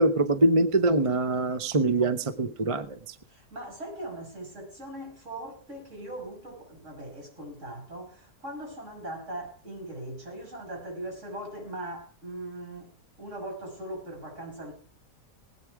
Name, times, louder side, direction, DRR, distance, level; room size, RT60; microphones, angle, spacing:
voice 1, 0.0-3.1, right 2 dB, 30° right, 0.7 m, -24 dB
voice 2, 3.3-12.9 13.2-14.7, right 1 dB, 55° right, 6.4 m, -40 dB
20.0 x 9.1 x 4.7 m
omnidirectional pair, 1.5 m